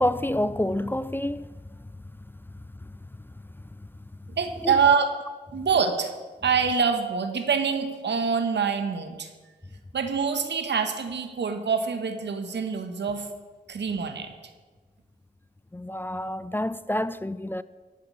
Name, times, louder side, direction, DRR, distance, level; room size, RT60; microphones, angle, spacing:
voice 1, 0.0-1.5 4.6-4.7 15.7-17.6, left 1 dB, 10° left, 0.4 m, -27 dB
voice 2, 4.3-5.1 5.5-6.1 6.4-9.3 9.9-13.3 13.7-14.3, right 6 dB, 80° right, 1.5 m, -25 dB
15.0 x 5.9 x 8.7 m
cardioid pair, 50°, 18 cm